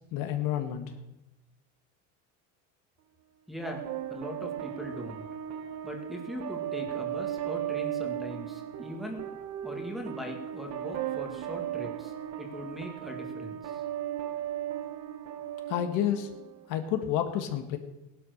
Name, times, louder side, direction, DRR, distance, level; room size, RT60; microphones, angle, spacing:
voice 1, 0.1-0.8 15.7-16.3 16.7-17.8, left 10 dB, 55° left, 7 dB, 1.9 m, -29 dB
voice 2, 3.5-5.2 5.8-9.3 9.6-13.8, equal, ahead, 0 dB, 2.0 m, -40 dB
sound 1, 3.6-16.7, right 11 dB, 45° right, 1.4 m, -36 dB
17.5 x 11.5 x 6.6 m, 0.97 s
cardioid pair, 165°, 37 cm